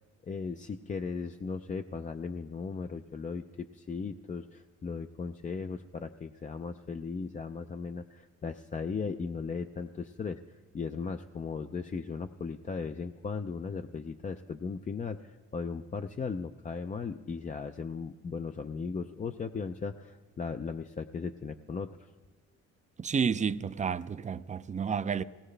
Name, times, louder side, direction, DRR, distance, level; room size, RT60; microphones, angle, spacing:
voice 1, 0.2-10.4 10.7-22.1, left 5 dB, 25° left, 0.5 m, -37 dB
voice 2, 23.0-25.2, right 6 dB, 25° right, 0.5 m, -30 dB
18.5 x 18.0 x 3.3 m
cardioid pair, 90°, 30 cm